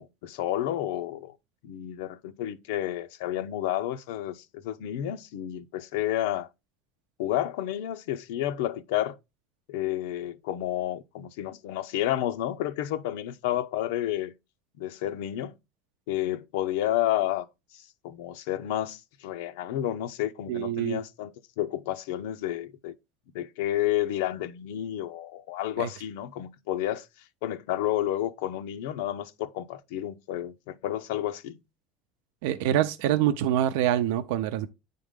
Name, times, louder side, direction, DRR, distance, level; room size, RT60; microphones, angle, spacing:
voice 1, 0.0-1.4 1.6-6.5 7.2-9.2 9.7-14.3 14.8-15.6 16.1-17.5 17.7-22.9 23.3-27.1 27.4-31.6, left 13 dB, 85° left, 0.7 m, -30 dB
voice 2, 20.5-21.0 25.8-25.9 32.4-34.7, right 11 dB, 80° right, 0.6 m, -25 dB
9.4 x 3.8 x 3.7 m
cardioid pair, 145°, 0 cm